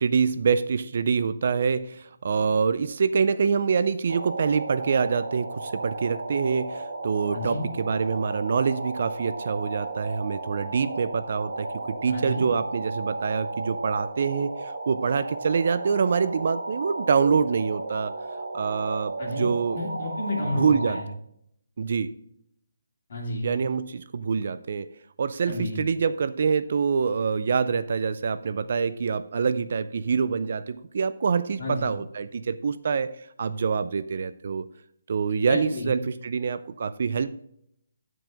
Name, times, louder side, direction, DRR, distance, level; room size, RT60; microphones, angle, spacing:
voice 1, 0.0-18.1 18.5-19.8 20.5-21.0 21.8-22.1 23.4-24.9 25.2-33.1 33.4-34.7 35.1-37.3, right 5 dB, 40° right, 13 dB, 0.3 m, -25 dB
sound 1, 4.1-21.0, right 2 dB, 90° right, 1.7 m, -34 dB
voice 2, 7.3-7.7 12.1-12.5 19.2-19.5 19.7-21.0 23.1-23.5 25.4-25.8 31.6-31.9 35.5-35.9, left 2 dB, 45° left, -2 dB, 2.5 m, -31 dB
9.8 x 4.7 x 5.1 m, 0.73 s
hypercardioid pair, 175°, 0 cm